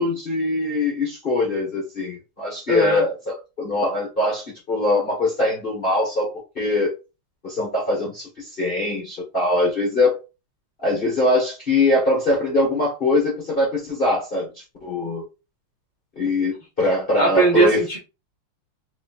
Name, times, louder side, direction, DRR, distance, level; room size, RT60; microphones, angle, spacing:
voice 1, 0.0-6.9 7.4-10.2 10.8-14.5 14.8-15.2 16.2-17.8, left 2 dB, 30° left, 1.2 m, -22 dB
voice 2, 2.7-3.1 17.1-18.0, right 3 dB, 25° right, 1.3 m, -19 dB
4.2 x 3.5 x 2.4 m
omnidirectional pair, 2.4 m